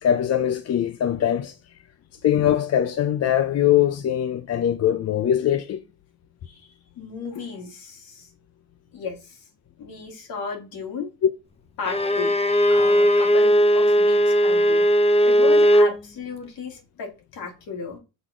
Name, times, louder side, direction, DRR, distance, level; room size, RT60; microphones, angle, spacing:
voice 1, 0.0-1.5 2.2-5.8, left 10 dB, 40° left, 0.6 m, -22 dB
voice 2, 6.4-8.3 8.9-9.5 9.8-11.1 11.8-12.3 12.7-14.9 15.2-18.0, left 5 dB, 65° left, 2.3 m, -35 dB
Bowed string instrument, 11.9-16.0, equal, 15° left, 0.9 m, -18 dB
6.1 x 3.6 x 4.9 m
supercardioid pair, 70°, 38 cm